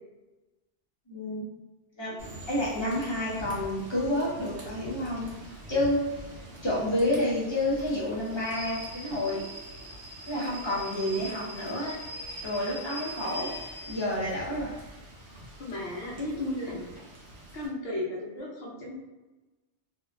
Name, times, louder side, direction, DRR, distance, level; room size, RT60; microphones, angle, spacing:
voice 1, 1.1-1.5 2.0-2.1 2.5-5.3 5.7-6.0 6.6-9.4 10.3-12.0 12.4-13.5 13.9-14.7, left 1 dB, 30° left, -8 dB, 0.7 m, -29 dB
Rain / Train, 2.2-17.7, right 1 dB, 75° right, 1.1 m, -43 dB
voice 2, 15.6-16.9 17.5-19.1, left 1 dB, 60° left, -4 dB, 1.0 m, -34 dB
2.6 x 2.4 x 2.2 m, 1.1 s
omnidirectional pair, 1.2 m